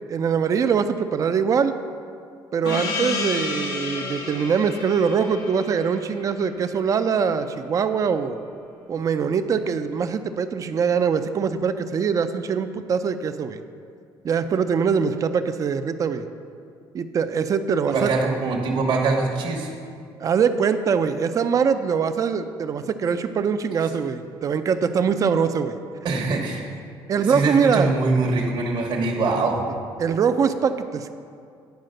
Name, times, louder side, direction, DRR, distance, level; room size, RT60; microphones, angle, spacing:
voice 1, 0.1-1.8 2.5-8.4 8.9-13.6 14.2-16.2 16.9-18.1 20.2-25.8 27.1-27.9 30.0-31.1, right 6 dB, 40° right, 9 dB, 0.5 m, -23 dB
Gong, 2.6-7.7, left 3 dB, 75° left, 1.5 m, -31 dB
voice 2, 17.9-19.7 26.0-26.7 27.3-29.7, right 3 dB, 55° right, -2 dB, 1.2 m, -23 dB
9.2 x 4.9 x 6.5 m, 2.3 s
cardioid pair, 120°, 9 cm